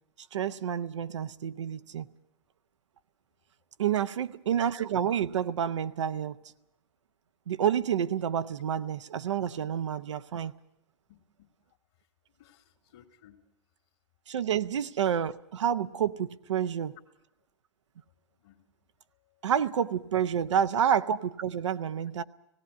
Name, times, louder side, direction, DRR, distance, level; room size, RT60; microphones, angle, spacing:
voice 1, 0.3-2.1 3.8-6.4 7.5-10.5 14.3-17.0 19.4-22.2, right 9 dB, 85° right, 0.7 m, -29 dB
voice 2, 4.1-4.4 11.1-11.5 12.4-13.4 18.4-18.7 19.1-19.5, left 10 dB, 60° left, 2.1 m, -60 dB
17.0 x 16.5 x 9.3 m
hypercardioid pair, 115°, 15 cm